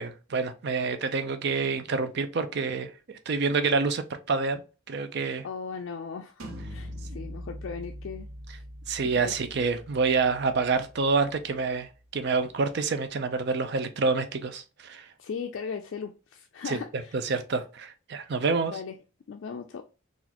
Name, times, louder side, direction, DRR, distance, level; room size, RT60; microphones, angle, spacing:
voice 1, 0.0-4.6 4.9-5.4 8.9-15.1 16.7-16.8 17.2-18.7, right 4 dB, 55° right, 0.5 m, -27 dB
voice 2, 5.4-8.6 9.1-9.4 15.2-17.2 18.6-19.0 19.3-19.8, left 5 dB, 60° left, 0.3 m, -38 dB
sound 1, 6.4-12.0, equal, 85° right, 0.8 m, -43 dB
4.0 x 2.5 x 2.9 m
head